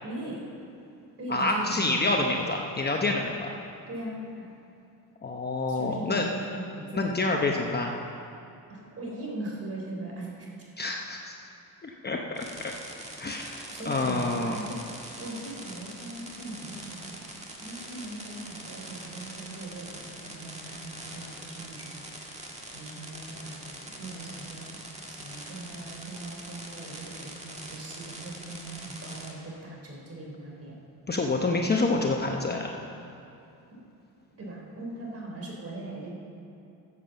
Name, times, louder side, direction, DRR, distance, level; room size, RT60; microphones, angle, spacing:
voice 1, 0.0-0.4 1.2-2.1 3.9-4.5 5.7-7.0 8.7-10.5 13.7-14.8 15.2-17.3 17.6-22.0 22.7-24.8 25.1-30.7 33.7-33.8 34.4-36.1, right 2 dB, 35° right, -2 dB, 3.3 m, -40 dB
voice 2, 1.3-3.5 5.2-6.3 6.9-8.0 10.8-11.4 11.8-12.7 13.2-14.6 31.1-32.8, left 2 dB, 25° left, 1 dB, 0.8 m, -28 dB
sound 1, 12.4-29.3, right 1 dB, 15° right, 1.6 m, -43 dB
14.5 x 7.3 x 6.9 m, 2.7 s
cardioid pair, 130°, 39 cm